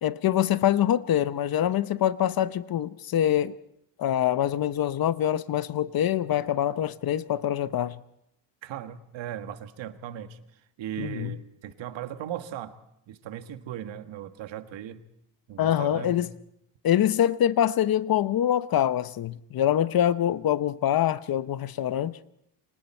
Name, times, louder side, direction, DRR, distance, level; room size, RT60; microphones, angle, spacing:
voice 1, 0.0-3.5 4.0-8.0 11.0-11.3 15.6-16.3 16.8-22.2, left 11 dB, 50° left, 0.8 m, -25 dB
voice 2, 8.6-12.8 13.1-15.0 15.5-16.2, right 11 dB, 80° right, 1.7 m, -38 dB
29.0 x 25.5 x 4.4 m
cardioid pair, 155°, 44 cm